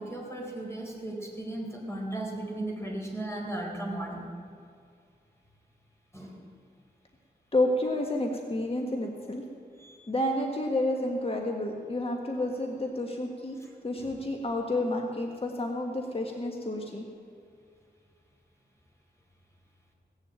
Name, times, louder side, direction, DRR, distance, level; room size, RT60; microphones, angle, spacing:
voice 1, 0.0-4.3 6.1-6.4 9.8-10.0 13.6-14.1, right 1 dB, 15° left, -1 dB, 4.2 m, -36 dB
voice 2, 7.5-9.4 10.1-13.6 13.8-17.0, left 1 dB, 35° left, 1 dB, 1.6 m, -30 dB
17.0 x 7.3 x 9.0 m, 2.3 s
cardioid pair, 65°, 18 cm